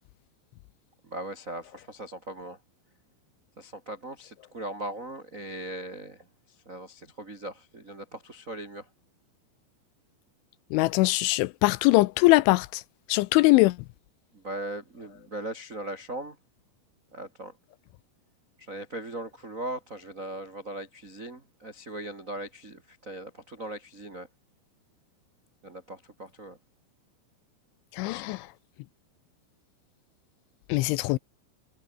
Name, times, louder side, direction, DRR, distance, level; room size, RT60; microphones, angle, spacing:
voice 1, 1.0-2.6 3.6-8.9 14.3-16.4 17.1-17.5 18.6-24.3 25.6-26.6 28.0-28.2, right 1 dB, 70° right, 0.7 m, -39 dB
voice 2, 10.7-12.8 13.1-13.8 27.9-28.5 30.7-31.2, left 20 dB, 85° left, 2.9 m, -22 dB
omnidirectional pair, 5.8 m